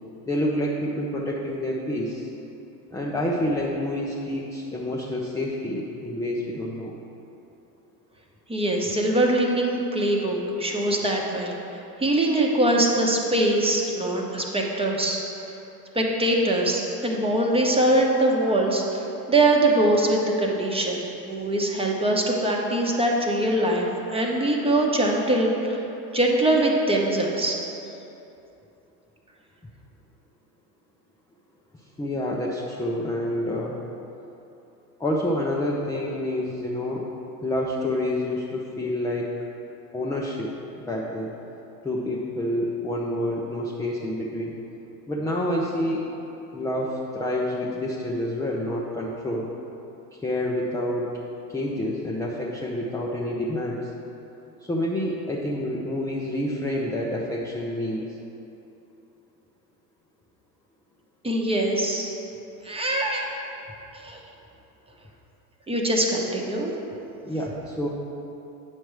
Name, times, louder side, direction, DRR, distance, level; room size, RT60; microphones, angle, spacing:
voice 1, 0.3-2.3 2.9-6.9 32.0-33.8 35.0-37.1 37.4-39.3 39.9-40.5 40.8-41.3 41.8-44.5 45.1-46.1 46.5-49.5 50.2-51.1 51.5-53.9 54.7-58.2 67.2-67.9, left 1 dB, 5° left, -3 dB, 0.5 m, -28 dB
voice 2, 8.5-11.6 12.0-15.2 15.9-25.8 26.1-27.6 61.2-62.1 62.6-63.3 64.0-64.2 65.7-66.7, right 1 dB, 10° right, -1 dB, 1.0 m, -23 dB
8.9 x 6.2 x 3.2 m, 2.9 s
hypercardioid pair, 85°, 47 cm